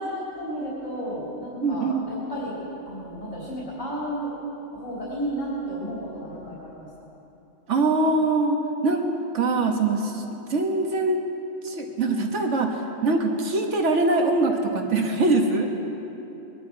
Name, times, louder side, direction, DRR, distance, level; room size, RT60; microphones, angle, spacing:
voice 1, 0.1-2.6 2.9-4.3 4.7-6.9, equal, 75° left, -7 dB, 3.9 m, -32 dB
voice 2, 1.6-1.9 7.7-8.6 8.8-9.1 9.3-10.2 10.5-11.2 11.6-15.7, right 3 dB, 60° right, 3 dB, 1.6 m, -23 dB
22.5 x 12.0 x 4.7 m, 3.0 s
omnidirectional pair, 1.4 m